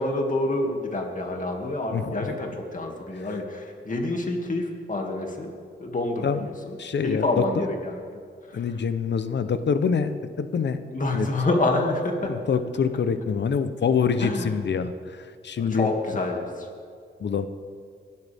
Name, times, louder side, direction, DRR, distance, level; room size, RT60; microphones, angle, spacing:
voice 1, 0.0-5.5 5.8-6.7 7.0-8.0 8.5-8.7 10.9-12.3 14.2-14.5 15.6-16.7, left 2 dB, 40° left, 1 dB, 2.4 m, -27 dB
voice 2, 1.9-2.4 6.2-6.4 6.8-7.6 8.5-10.8 11.1-11.3 12.2-15.9 17.2-17.5, left 6 dB, 65° left, 11 dB, 0.9 m, -25 dB
22.0 x 12.5 x 3.6 m, 2.2 s
cardioid pair, 70°, 20 cm